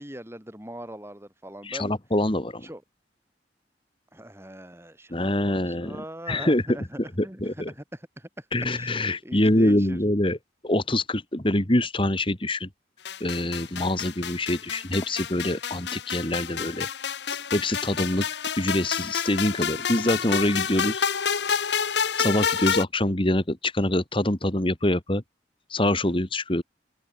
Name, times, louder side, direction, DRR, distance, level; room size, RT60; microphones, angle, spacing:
voice 1, 0.0-1.9 2.6-2.8 4.1-7.4 7.7-8.5 8.7-8.9 9.2-10.0, right 1 dB, 15° right, 7.4 m, -41 dB
voice 2, 1.6-2.7 5.1-6.0 6.3-6.8 7.2-7.7 8.5-10.4 10.6-12.7 13.2-16.9 17.5-18.2 18.6-21.0 22.2-25.2 25.7-26.6, left 1 dB, 30° left, 2.3 m, -25 dB
sound 1, 13.1-22.8, left 7 dB, 75° left, 1.0 m, -29 dB
head